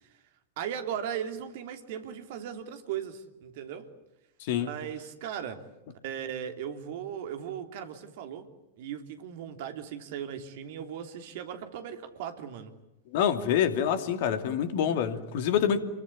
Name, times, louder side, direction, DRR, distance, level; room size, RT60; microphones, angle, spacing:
voice 1, 0.6-3.9 4.5-5.6 6.0-8.5 8.8-12.7, right 9 dB, 50° right, 3.1 m, -37 dB
voice 2, 4.4-4.7 13.1-15.8, left 9 dB, 50° left, 2.7 m, -26 dB
29.0 x 23.0 x 8.6 m
figure-of-eight pair, 90°, 0 cm